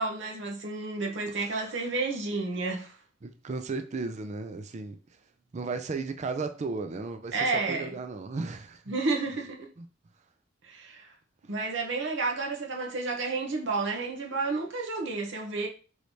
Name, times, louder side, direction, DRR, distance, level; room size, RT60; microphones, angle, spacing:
voice 1, 0.0-2.9 7.3-7.9 8.9-9.7 10.6-11.1 11.5-15.7, right 3 dB, 65° right, 0.8 m, -31 dB
voice 2, 1.3-1.9 3.2-5.0 5.5-8.8 9.8-9.9, right 3 dB, 35° right, 0.4 m, -35 dB
4.8 x 3.2 x 2.7 m
head